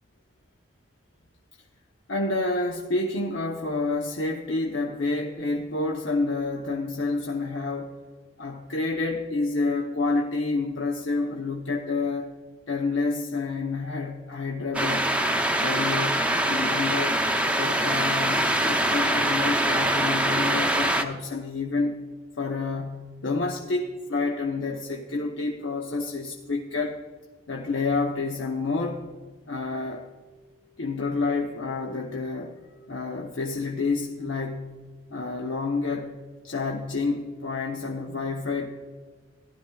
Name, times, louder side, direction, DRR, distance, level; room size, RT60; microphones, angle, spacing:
voice 1, 2.1-7.9 8.4-12.3 12.7-15.2 15.6-17.2 17.6-22.0 22.4-27.0 27.5-29.0 29.5-30.1 30.8-32.5 32.9-34.8 35.1-36.2 36.4-38.7, left 3 dB, 85° left, 1 dB, 0.8 m, -29 dB
sound 1, 14.7-21.0, right 1 dB, 5° right, 0.6 m, -24 dB
15.5 x 12.0 x 2.3 m, 1.4 s
head